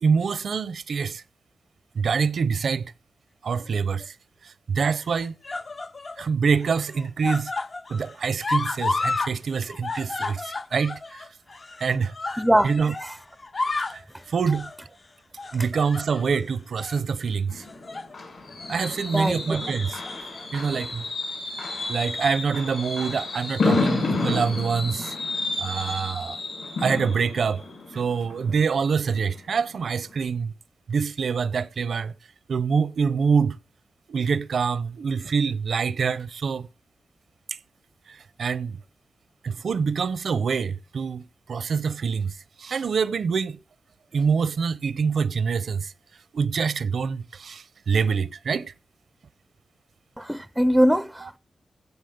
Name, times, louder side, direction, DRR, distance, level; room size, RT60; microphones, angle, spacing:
voice 1, 0.0-1.2 1.9-2.9 3.4-4.1 4.4-5.3 6.2-7.5 7.9-11.3 11.8-12.9 13.9-14.0 14.3-14.7 15.5-17.6 18.7-20.0 20.5-21.1 21.9-26.4 26.8-27.6 27.9-30.5 30.9-32.1 32.5-33.6 34.1-36.7 37.5-37.6 38.1-38.8 39.4-43.6 44.1-45.9 46.3-48.7, right 5 dB, 70° right, 0.6 m, -25 dB
sound 1, 3.5-4.1 5.0-6.2 6.6-9.3 9.6-13.1 13.4-14.0 14.5-14.8 15.4-16.4 16.8-17.0 17.6-18.1 18.5-18.7 19.8-20.4 21.3-21.4, left 3 dB, 35° left, 0.5 m, -32 dB
voice 2, 12.4-12.7 13.0-13.1 19.1-19.6 50.2-51.4, equal, 5° right, 0.5 m, -22 dB
Fireworks, 17.5-29.2 29.6-29.8 30.1-30.2, left 3 dB, 75° left, 7.1 m, -30 dB
16.0 x 7.1 x 5.2 m
wide cardioid pair, 110°, 0 cm